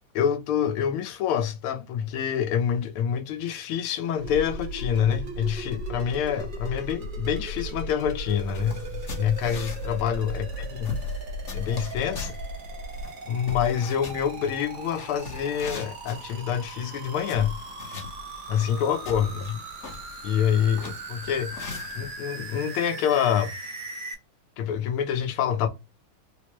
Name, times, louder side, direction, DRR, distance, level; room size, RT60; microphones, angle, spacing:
voice 1, 0.1-11.0 11.5-12.4 13.3-17.6 18.5-19.6 20.2-21.6 22.0-23.5 24.6-25.7, left 8 dB, 90° left, 1.6 m, -26 dB
sound 1, 4.2-13.1, left 2 dB, 65° left, 1.1 m, -36 dB
sound 2, 4.2-24.1, right 3 dB, 85° right, 0.4 m, -40 dB
sound 3, 8.2-22.1, left 4 dB, 50° left, 0.9 m, -41 dB
4.4 x 2.1 x 2.9 m
omnidirectional pair, 2.3 m